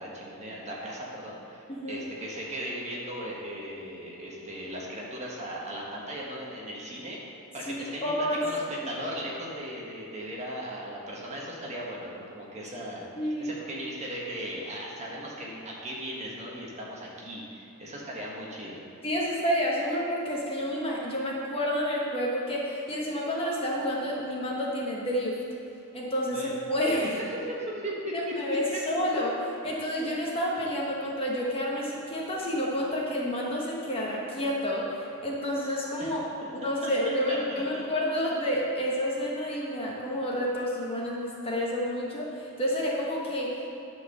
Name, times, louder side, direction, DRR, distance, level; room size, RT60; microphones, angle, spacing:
voice 1, 0.0-18.8 26.3-26.5 27.0-28.3 28.7-28.8 36.0-36.2 36.8-37.8, equal, 30° right, -4 dB, 1.5 m, -37 dB
voice 2, 1.7-2.0 7.6-7.7 8.0-8.4 13.1-13.5 19.0-25.4 25.9-27.1 28.1-29.3 29.6-36.3 36.5-43.7, equal, 25° left, -3 dB, 1.2 m, -29 dB
10.5 x 4.5 x 6.9 m, 2.8 s
head